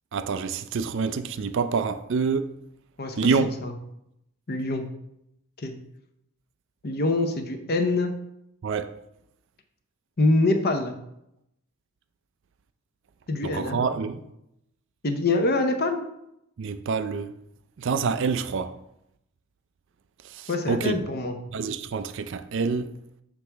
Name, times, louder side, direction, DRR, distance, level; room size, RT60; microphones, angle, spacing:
voice 1, 0.1-2.5 3.2-3.5 8.6-8.9 13.4-14.2 16.6-17.3 17.8-18.8 20.3-21.1 21.5-22.9, right 5 dB, 55° right, 0.4 m, -27 dB
voice 2, 3.0-3.7 4.5-4.8 5.6-5.7 6.8-8.1 10.2-11.0 13.3-13.8 15.0-16.0 20.5-21.4, left 2 dB, 45° left, 0.7 m, -25 dB
6.1 x 6.0 x 3.4 m
head